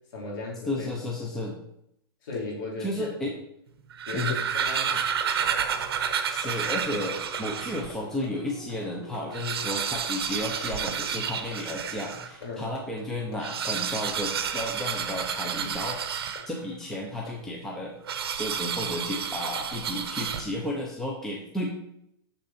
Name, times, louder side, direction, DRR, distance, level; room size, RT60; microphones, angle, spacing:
voice 1, 0.1-0.9 2.2-3.1 4.1-5.1 12.4-12.7, left 3 dB, 50° left, -3 dB, 3.4 m, -35 dB
voice 2, 0.7-1.6 2.8-3.3 4.1-4.4 6.3-17.9 18.4-21.7, left 1 dB, 5° left, -2 dB, 0.7 m, -33 dB
sound 1, 3.8-8.0 8.5-8.6 8.8-8.9 9.2-12.4 13.3-16.8 18.1-20.8, right 7 dB, 70° right, 0.9 m, -30 dB
sound 2, 4.9-17.5, left 4 dB, 80° left, 3.3 m, -49 dB
sound 3, 5.0-11.7, right 1 dB, 15° right, 1.3 m, -52 dB
6.9 x 6.5 x 4.2 m, 0.77 s
hypercardioid pair, 165°, 13 cm